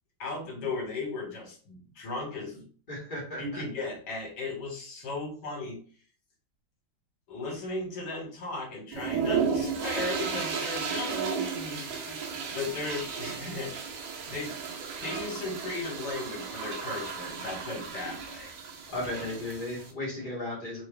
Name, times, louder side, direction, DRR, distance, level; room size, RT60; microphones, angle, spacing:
voice 1, 0.2-2.6 3.4-5.8 7.3-11.8 12.5-13.7 14.3-14.7 15.0-18.5 20.2-20.3, left 3 dB, 60° left, 0 dB, 1.8 m, -36 dB
voice 2, 2.9-3.6 11.8-12.4 18.9-20.9, left 1 dB, 30° left, -5 dB, 1.1 m, -36 dB
sound 1, 8.9-19.9, right 6 dB, 85° right, 1.5 m, -34 dB
3.8 x 2.2 x 3.3 m, 0.42 s
omnidirectional pair, 2.2 m